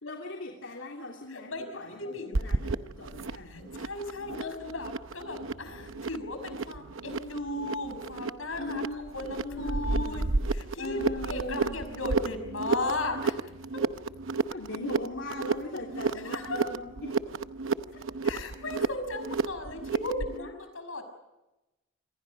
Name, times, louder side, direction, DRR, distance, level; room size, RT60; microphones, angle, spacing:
voice 1, 0.0-3.8 4.3-4.8 8.6-10.2 10.8-11.8 14.5-17.1 17.9-18.0 20.3-20.5, left 2 dB, 70° left, 0 dB, 3.0 m, -40 dB
voice 2, 1.3-2.3 3.5-8.8 9.1-13.4 16.2-16.6 18.2-21.1, left 2 dB, 85° left, 8 dB, 5.9 m, -36 dB
sound 1, 2.3-20.4, right 4 dB, 80° right, 0.8 m, -32 dB
27.5 x 25.5 x 5.3 m, 1.0 s
head